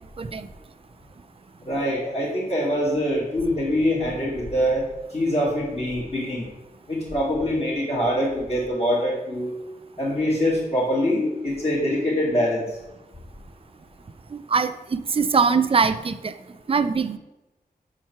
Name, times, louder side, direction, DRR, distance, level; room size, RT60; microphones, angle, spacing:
voice 1, 1.7-4.9 5.1-6.5 6.9-9.5 10.0-12.7, equal, 35° left, -9 dB, 2.3 m, -24 dB
voice 2, 14.3-16.3 16.7-17.2, right 5 dB, 35° right, 11 dB, 0.4 m, -22 dB
5.9 x 4.5 x 5.7 m, 0.99 s
wide cardioid pair, 80°, 16 cm